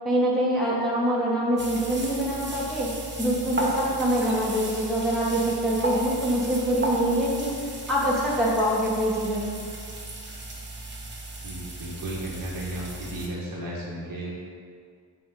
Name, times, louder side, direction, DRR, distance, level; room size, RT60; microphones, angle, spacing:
voice 1, 0.0-2.9 3.2-7.5 7.9-9.6, right 1 dB, ahead, -7 dB, 1.3 m, -24 dB
sound 1, 1.6-13.3, right 1 dB, 25° right, 1.0 m, -35 dB
voice 2, 11.4-14.3, right 1 dB, 55° right, -6 dB, 1.4 m, -34 dB
6.0 x 3.5 x 5.3 m, 2.2 s
cardioid pair, 85°, 41 cm